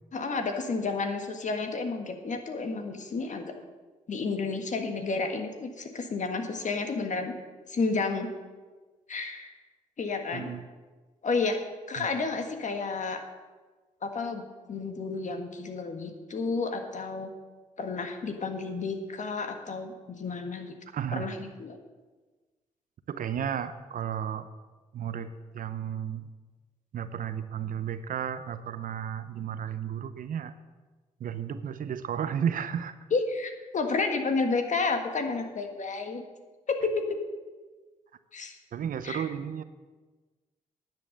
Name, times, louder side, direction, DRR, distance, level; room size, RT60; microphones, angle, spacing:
voice 1, 0.1-3.5 4.1-7.3 7.7-8.3 9.1-9.5 10.0-10.5 11.2-11.6 11.9-13.2 14.0-14.4 14.7-17.3 17.8-20.8 21.1-21.8 33.1-36.2 36.7-37.2 38.3-38.6 39.0-39.2, left 4 dB, 50° left, 5 dB, 1.6 m, -31 dB
voice 2, 10.3-10.6 12.0-12.1 20.9-21.3 23.1-24.5 24.9-26.3 26.9-30.5 31.2-32.9 38.7-39.6, right 8 dB, 65° right, 12 dB, 0.7 m, -33 dB
10.5 x 7.8 x 6.5 m, 1.3 s
supercardioid pair, 50°, 16 cm